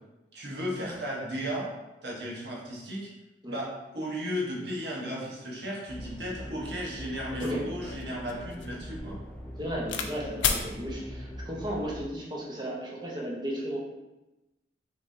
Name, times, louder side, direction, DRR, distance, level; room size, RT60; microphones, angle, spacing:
voice 1, 0.3-1.7 2.0-3.1 3.5-9.2, equal, 65° right, -4 dB, 1.2 m, -35 dB
sound 1, 5.9-12.0, equal, 5° left, 0.4 m, -42 dB
sound 2, 6.7-6.8 7.3-10.1 10.4-10.7 11.5-11.9, left 6 dB, 85° left, 0.5 m, -33 dB
voice 2, 9.6-13.8, equal, 20° right, -4 dB, 0.9 m, -34 dB
5.6 x 3.3 x 2.7 m, 1.0 s
head